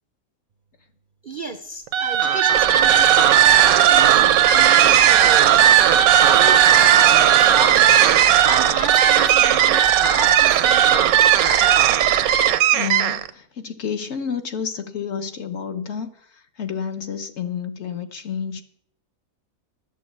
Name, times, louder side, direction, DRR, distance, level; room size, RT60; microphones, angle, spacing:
voice 1, 1.2-11.2, right 3 dB, 55° right, 0.6 m, -33 dB
sound 1, 1.9-13.3, right 10 dB, 80° right, 1.1 m, -15 dB
voice 2, 12.7-18.6, left 7 dB, 55° left, 1.0 m, -30 dB
11.5 x 6.2 x 8.1 m
omnidirectional pair, 1.6 m